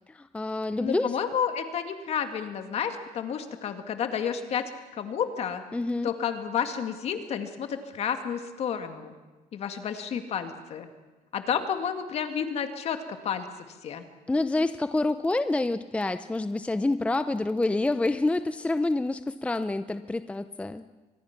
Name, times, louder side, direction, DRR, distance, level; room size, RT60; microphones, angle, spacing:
voice 1, 0.1-1.2 5.7-6.1 14.3-20.8, left 2 dB, 10° left, 11 dB, 0.6 m, -27 dB
voice 2, 0.8-5.6 6.0-9.1 9.5-10.9 11.3-13.5 13.8-14.1, left 7 dB, 50° left, 7 dB, 2.1 m, -31 dB
24.5 x 20.5 x 6.0 m, 1.2 s
cardioid pair, 125°, 13 cm